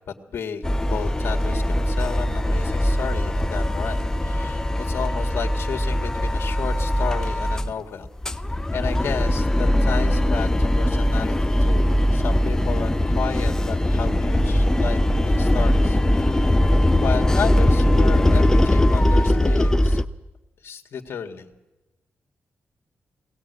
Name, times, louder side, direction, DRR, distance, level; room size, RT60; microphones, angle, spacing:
voice 1, 0.3-8.1 8.7-16.5 17.0-20.0 20.6-21.5, left 7 dB, 65° left, 4 dB, 1.9 m, -32 dB
sound 1, 0.6-7.7 8.0-20.0, left 1 dB, 15° left, 0.7 m, -20 dB
21.5 x 18.0 x 8.1 m, 1.1 s
wide cardioid pair, 125°, 4 cm